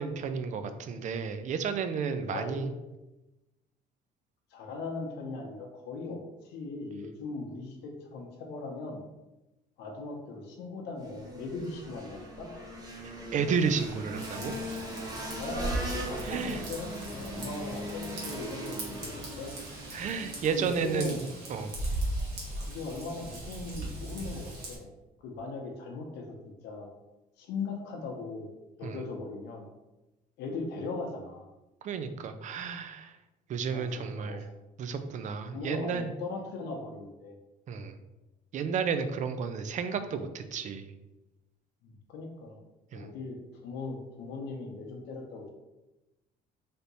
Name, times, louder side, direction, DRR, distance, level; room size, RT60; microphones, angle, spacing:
voice 1, 0.0-2.7 13.3-14.5 16.2-16.6 19.9-21.2 21.5-21.7 28.8-29.0 31.8-33.1 33.5-34.4 34.8-36.1 37.7-37.9 38.5-40.9 42.9-43.1, right 6 dB, 45° right, 9 dB, 0.4 m, -32 dB
voice 2, 2.3-2.7 4.5-9.0 9.8-12.5 15.4-19.5 20.5-21.2 22.6-24.9 25.2-26.4 26.6-26.9 27.4-28.5 28.8-29.7 30.4-31.4 33.6-34.5 35.5-37.4 41.8-42.6 42.9-45.5, left 3 dB, 80° left, 1 dB, 0.7 m, -39 dB
sound 1, 11.0-20.8, right 1 dB, 20° right, 1.1 m, -40 dB
Raindrop / Vehicle horn car horn honking / Trickle dribble, 14.1-24.8, right 1 dB, 75° right, 1.3 m, -38 dB
3.5 x 2.7 x 4.0 m, 1.0 s
cardioid pair, 110°, 17 cm